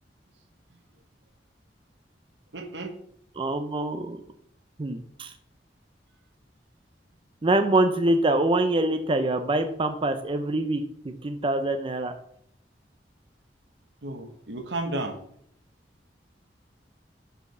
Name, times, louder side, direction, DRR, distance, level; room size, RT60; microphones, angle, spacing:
voice 1, 2.5-2.9 14.0-15.2, right 2 dB, 85° right, 6 dB, 1.2 m, -33 dB
voice 2, 3.4-4.2 4.8-5.3 7.4-12.1, right 2 dB, 30° right, 8 dB, 0.5 m, -25 dB
5.1 x 4.8 x 6.3 m, 0.67 s
head